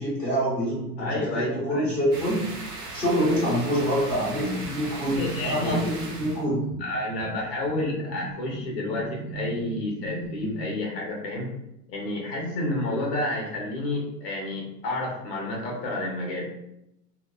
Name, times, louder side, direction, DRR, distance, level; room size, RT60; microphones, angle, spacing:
voice 1, 0.0-2.4 2.9-6.6, equal, 5° left, -14 dB, 1.1 m, -26 dB
voice 2, 1.0-1.9 4.5-5.8 6.8-11.5 11.9-16.5, left 2 dB, 35° left, -2 dB, 0.7 m, -30 dB
sound 1, 2.1-6.4, right 3 dB, 70° right, 0.9 m, -38 dB
sound 2, 3.8-10.6, right 3 dB, 30° right, 0.9 m, -38 dB
2.8 x 2.0 x 2.2 m, 0.84 s
supercardioid pair, 165°, 48 cm